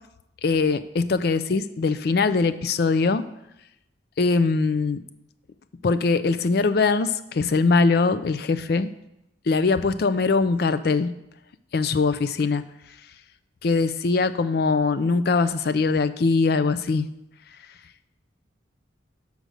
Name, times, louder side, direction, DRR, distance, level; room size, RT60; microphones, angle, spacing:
voice 1, 0.4-3.3 4.2-5.0 5.8-8.9 9.5-11.1 11.7-12.6 13.6-17.1, left 4 dB, 55° left, 13 dB, 0.4 m, -22 dB
6.7 x 4.9 x 6.3 m, 0.86 s
head